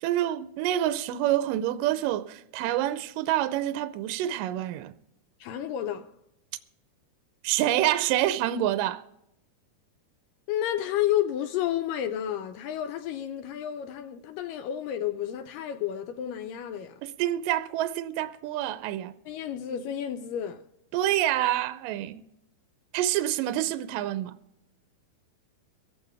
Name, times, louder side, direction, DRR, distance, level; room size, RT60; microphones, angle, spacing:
voice 1, 0.0-4.9 7.4-9.0 17.0-19.2 20.9-22.2 22.9-24.4, right 13 dB, 80° right, 2.0 m, -27 dB
voice 2, 5.4-6.1 10.5-17.0 19.3-20.6, left 11 dB, 80° left, 2.0 m, -31 dB
24.0 x 8.6 x 3.4 m
omnidirectional pair, 4.5 m